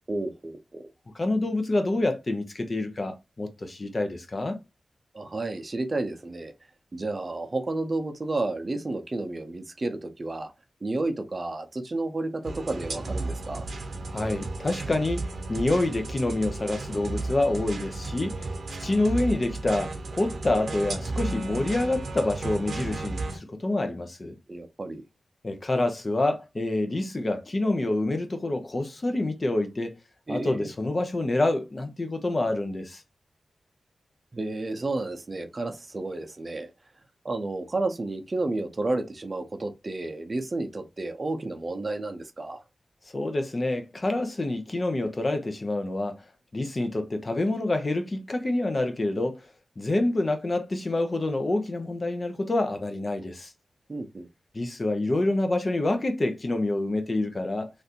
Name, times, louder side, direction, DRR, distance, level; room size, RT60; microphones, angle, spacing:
voice 1, 0.1-0.9 5.1-6.5 6.9-10.5 10.8-13.7 24.5-25.0 30.3-30.7 34.3-36.7 37.2-42.6 53.9-54.3, right 2 dB, 40° right, 0.5 m, -31 dB
voice 2, 1.1-4.6 14.1-18.4 18.8-24.3 25.4-29.9 30.3-33.0 43.1-46.2 46.5-49.4 49.8-53.5 54.5-57.7, left 2 dB, 40° left, 0.7 m, -27 dB
sound 1, 12.4-23.4, right 2 dB, 80° right, 0.7 m, -34 dB
3.2 x 2.5 x 2.8 m
cardioid pair, 65°, 0 cm